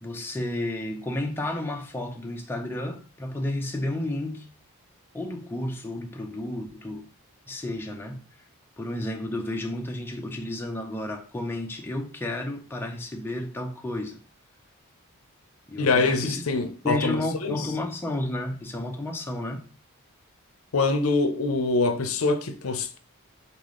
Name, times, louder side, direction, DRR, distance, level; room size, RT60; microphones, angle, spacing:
voice 1, 0.0-4.5 5.1-7.1 7.5-8.3 8.8-14.2 15.7-16.4 16.8-19.7, left 1 dB, 10° left, 0.5 m, -32 dB
voice 2, 15.8-17.7 20.7-23.0, left 3 dB, 65° left, 0.6 m, -24 dB
4.0 x 3.5 x 3.7 m
head